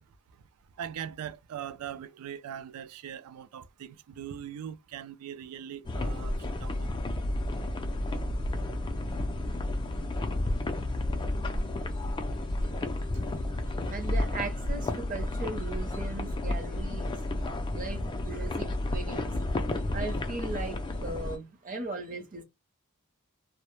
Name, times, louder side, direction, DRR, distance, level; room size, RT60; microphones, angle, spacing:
voice 1, 0.8-6.9 9.2-10.1 12.7-13.0 13.3-13.7, right 9 dB, 80° right, 0.3 m, -42 dB
sound 1, 5.8-21.4, left 1 dB, 20° left, 0.3 m, -31 dB
voice 2, 11.9-12.3 12.6-12.8 13.3-17.2 17.7-19.5 19.9-22.4, right 3 dB, 35° right, 0.6 m, -39 dB
2.1 x 2.1 x 2.9 m
head